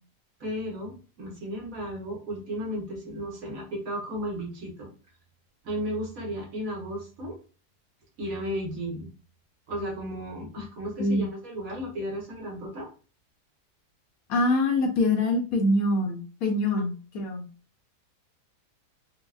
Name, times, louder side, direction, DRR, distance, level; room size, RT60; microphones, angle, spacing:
voice 1, 0.4-4.9 5.6-7.4 8.2-9.1 9.7-12.9, equal, 60° right, -2 dB, 1.5 m, -34 dB
voice 2, 14.3-17.5, left 2 dB, 70° left, 3 dB, 1.0 m, -24 dB
4.6 x 2.3 x 2.3 m, 0.37 s
omnidirectional pair, 1.7 m